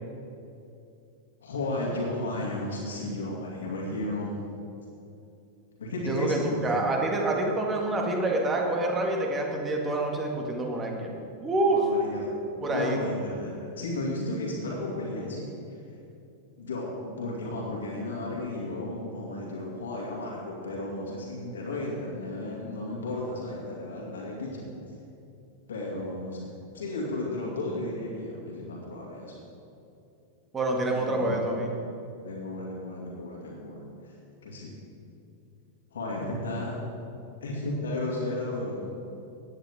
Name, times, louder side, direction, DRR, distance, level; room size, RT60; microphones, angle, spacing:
voice 1, 1.4-4.4 5.8-6.8 11.7-12.3 12.7-15.5 16.6-24.6 25.7-29.4 30.9-31.4 32.2-34.1 34.4-34.8 35.9-36.8 37.4-38.9, left 1 dB, 65° left, -3 dB, 2.4 m, -34 dB
voice 2, 6.0-11.8 12.6-13.1 30.5-31.7, right 2 dB, 20° right, 1 dB, 2.0 m, -27 dB
17.5 x 10.0 x 3.7 m, 2.7 s
figure-of-eight pair, 90°, 0 cm